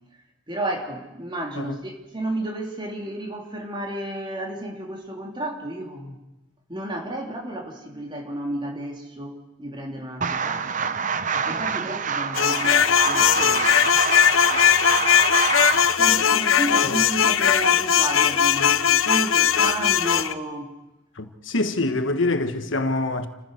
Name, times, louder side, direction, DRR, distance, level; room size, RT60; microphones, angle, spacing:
voice 1, 0.5-6.2 6.7-10.9 11.3-13.8 15.5-20.7, right 1 dB, 25° right, 3.0 m, -32 dB
sound 1, 10.2-16.0, right 6 dB, 40° right, 0.7 m, -26 dB
sound 2, 12.3-20.3, left 9 dB, 90° left, 0.8 m, -19 dB
voice 2, 21.2-23.3, left 2 dB, 70° left, 1.4 m, -25 dB
29.0 x 15.5 x 6.5 m
head